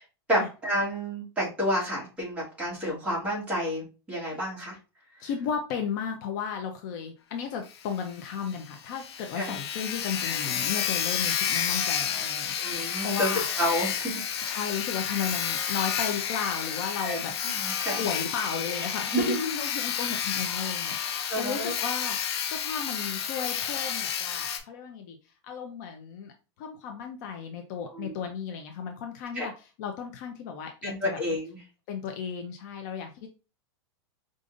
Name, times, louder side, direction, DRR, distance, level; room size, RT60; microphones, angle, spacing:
voice 1, 0.3-4.8 9.3-9.5 12.6-13.3 13.6-14.1 14.4-14.6 17.0-18.0 19.1-19.4 21.3-21.7 27.9-28.1 29.3-29.5 30.8-31.6, equal, 10° right, -5 dB, 1.5 m, -30 dB
voice 2, 5.2-13.5 14.4-17.7 18.0-25.2 25.4-26.3 26.6-31.2 31.9-33.3, left 6 dB, 40° left, 4 dB, 0.5 m, -34 dB
Sawing, 7.7-7.8 8.1-8.2 8.6-8.7 8.9-24.6, left 8 dB, 75° left, 0.7 m, -30 dB
4.9 x 2.5 x 2.5 m, 0.31 s
supercardioid pair, 165°, 14 cm